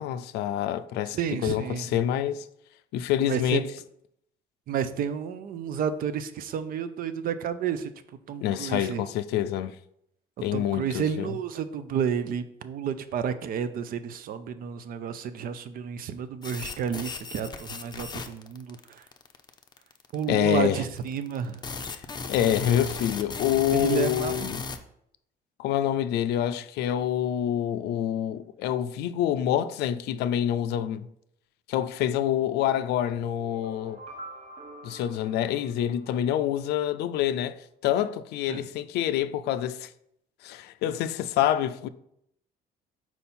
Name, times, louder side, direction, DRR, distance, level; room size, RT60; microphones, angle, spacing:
voice 1, 0.0-2.5 2.9-3.6 8.4-9.7 10.4-11.4 20.3-20.8 22.3-24.6 25.6-31.1 31.7-34.0 34.8-37.6 37.8-39.9 40.4-41.9, left 11 dB, 80° left, 0.4 m, -27 dB
voice 2, 1.1-1.9 3.2-3.6 4.7-7.9 8.3-9.0 10.5-19.0 20.1-21.6 23.7-24.5 38.5-38.6, right 7 dB, 60° right, 0.6 m, -31 dB
sound 1, 16.4-24.8, left 4 dB, 25° left, 0.6 m, -36 dB
sound 2, 33.4-36.4, right 2 dB, 40° right, 0.9 m, -46 dB
5.4 x 4.6 x 4.3 m
cardioid pair, 110°, 17 cm